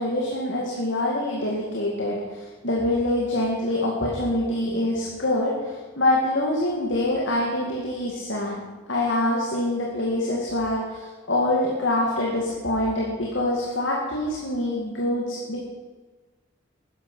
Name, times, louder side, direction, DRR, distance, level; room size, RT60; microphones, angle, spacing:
voice 1, 0.0-8.6 8.9-15.6, left 1 dB, 65° left, -2 dB, 2.3 m, -25 dB
13.0 x 10.5 x 5.7 m, 1.3 s
head